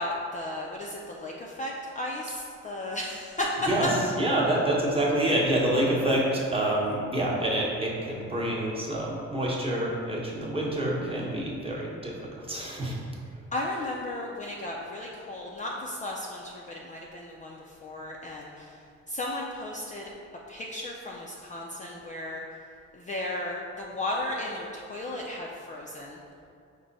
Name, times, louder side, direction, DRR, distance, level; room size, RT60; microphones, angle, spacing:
voice 1, 0.0-3.6 13.5-18.7 19.1-20.0 20.5-22.4 22.9-26.2, left 1 dB, 25° left, -3 dB, 0.4 m, -35 dB
voice 2, 3.6-12.1 12.5-13.0 13.7-13.8, right 1 dB, 20° right, -4 dB, 0.8 m, -27 dB
4.8 x 2.2 x 3.9 m, 2.4 s
cardioid pair, 90°, 30 cm